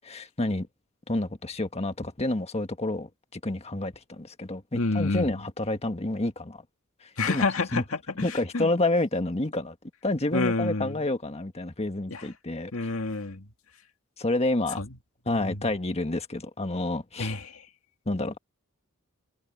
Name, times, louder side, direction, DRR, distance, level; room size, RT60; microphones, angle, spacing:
voice 1, 0.0-0.7 1.1-6.6 7.0-7.4 7.7-7.8 8.2-9.8 10.0-12.7 14.2-14.8 15.2-17.3 18.0-18.4, left 2 dB, 30° left, 1.6 m, -29 dB
voice 2, 4.7-5.4 7.2-8.7 10.3-11.0 12.1-12.3 12.7-13.5 14.8-14.9 15.3-15.7 17.2-17.7, left 3 dB, 70° left, 2.2 m, -29 dB
head